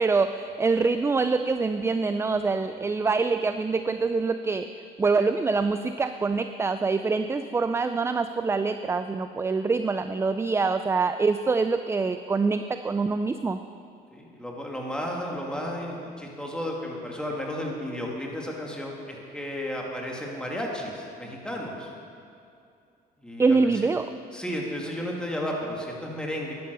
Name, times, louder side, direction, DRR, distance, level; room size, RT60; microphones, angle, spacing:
voice 1, 0.0-13.6 23.4-24.1, right 4 dB, 15° right, 10 dB, 0.4 m, -25 dB
voice 2, 14.1-21.9 23.2-23.6 24.3-26.5, equal, 5° left, -1 dB, 2.4 m, -33 dB
11.0 x 11.0 x 6.8 m, 2.5 s
cardioid pair, 110°, 17 cm